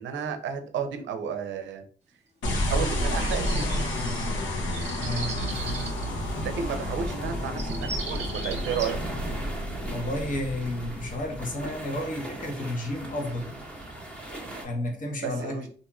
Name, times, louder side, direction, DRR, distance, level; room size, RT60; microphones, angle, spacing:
voice 1, 0.0-1.8 2.5-3.8 6.4-9.0 15.2-15.7, right 7 dB, 70° right, 7 dB, 0.6 m, -32 dB
sound 1, 2.4-11.8, left 1 dB, 70° left, 0.8 m, -30 dB
sound 2, 3.0-4.3 4.7-6.0 7.2-7.3 7.6-8.9, right 3 dB, 35° right, 0.9 m, -38 dB
voice 2, 5.0-5.4 9.9-13.5 14.3-15.7, left 1 dB, 40° left, 2 dB, 0.9 m, -32 dB
sound 3, 5.5-14.7, right 1 dB, 5° left, 0.9 m, -40 dB
2.9 x 2.6 x 2.3 m, 0.43 s
cardioid pair, 90°, 20 cm